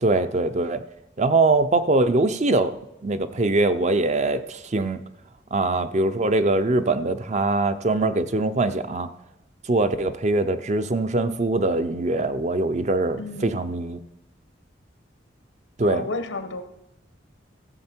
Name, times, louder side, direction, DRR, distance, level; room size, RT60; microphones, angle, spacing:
voice 1, 0.0-0.8 1.2-2.8 3.0-5.0 5.5-9.1 9.6-14.0 15.8-16.0, right 2 dB, 40° right, 10 dB, 0.5 m, -22 dB
voice 2, 13.2-13.6 15.8-16.6, left 2 dB, 90° left, 8 dB, 1.2 m, -32 dB
15.5 x 7.5 x 4.4 m, 0.83 s
head